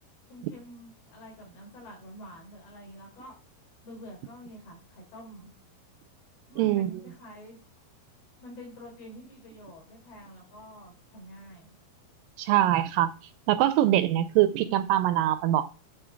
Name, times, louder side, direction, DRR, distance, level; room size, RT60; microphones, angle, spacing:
voice 1, 0.3-3.3 3.8-5.5 6.5-7.6 8.4-11.8, equal, 85° left, 6.3 m, -47 dB
voice 2, 6.6-7.0 12.4-13.1 13.5-15.7, right 13 dB, 80° right, 2.1 m, -23 dB
11.0 x 6.0 x 4.5 m
omnidirectional pair, 4.3 m